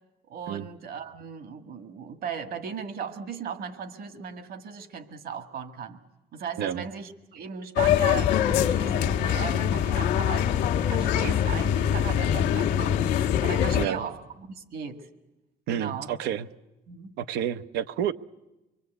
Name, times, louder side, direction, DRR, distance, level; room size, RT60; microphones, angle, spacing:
voice 1, 0.3-6.0 6.3-15.1 15.7-16.1 16.9-17.2, right 7 dB, 60° right, 1.8 m, -37 dB
sound 1, 7.8-13.9, left 9 dB, 90° left, 1.2 m, -24 dB
voice 2, 15.7-16.5 17.2-18.1, right 10 dB, 85° right, 0.8 m, -29 dB
25.0 x 23.0 x 8.1 m
cardioid pair, 110°, 17 cm